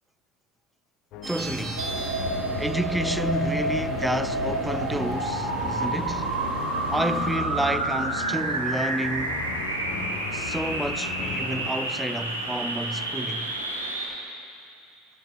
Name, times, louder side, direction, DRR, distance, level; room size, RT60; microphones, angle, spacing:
sound 1, 1.1-11.7, left 7 dB, 45° left, 0.9 m, -38 dB
sound 2, 1.2-7.4, right 3 dB, 20° right, 1.8 m, -38 dB
voice 1, 1.3-1.9 2.6-6.4 6.9-9.4 10.3-13.5, right 1 dB, 5° right, 0.4 m, -30 dB
sound 3, 1.8-14.1, right 1 dB, 80° right, 1.9 m, -29 dB
20.5 x 18.0 x 2.5 m
figure-of-eight pair, 70°, 0 cm